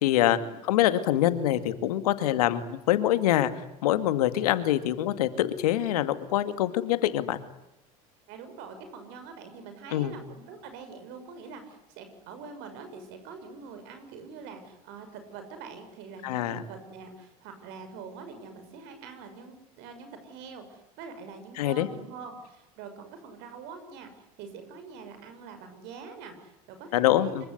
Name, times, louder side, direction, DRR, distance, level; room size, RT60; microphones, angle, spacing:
voice 1, 0.0-3.5 3.8-7.4 9.9-10.1 16.2-16.6 21.6-21.9 26.9-27.4, left 13 dB, 85° left, 11 dB, 2.2 m, -25 dB
voice 2, 8.3-27.5, right 5 dB, 65° right, 8 dB, 6.6 m, -44 dB
25.5 x 23.5 x 9.7 m, 0.88 s
hypercardioid pair, 85°, 19 cm